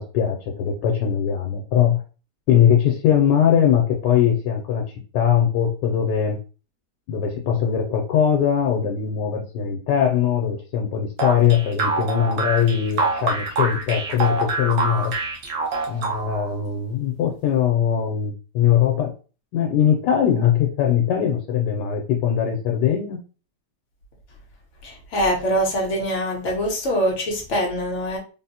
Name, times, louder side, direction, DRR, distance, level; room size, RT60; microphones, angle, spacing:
voice 1, 0.0-2.0 2.5-4.8 5.1-6.4 7.1-15.1 15.9-19.1 19.5-23.2, left 9 dB, 80° left, 1 dB, 1.2 m, -21 dB
sound 1, 11.2-16.5, right 3 dB, 60° right, 0.9 m, -25 dB
voice 2, 24.8-28.2, equal, 55° left, 0 dB, 1.0 m, -23 dB
3.7 x 2.0 x 2.8 m, 0.35 s
omnidirectional pair, 1.8 m